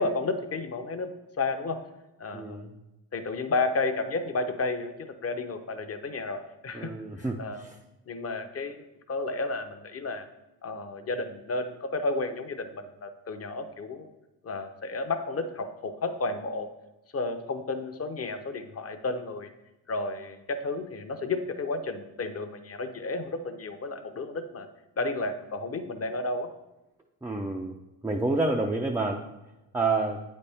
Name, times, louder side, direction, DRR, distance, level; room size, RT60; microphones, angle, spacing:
voice 1, 0.0-1.8 2.2-2.7 3.1-7.7 8.1-10.3 10.6-14.1 14.4-16.7 17.1-19.5 19.9-24.7 25.0-26.5, left 3 dB, 30° left, 8 dB, 0.7 m, -32 dB
voice 2, 2.3-2.7 6.7-7.7 27.2-27.8 28.0-29.3 29.7-30.2, right 3 dB, 5° right, 0 dB, 0.4 m, -28 dB
8.1 x 4.2 x 3.4 m, 0.99 s
supercardioid pair, 75°, 48 cm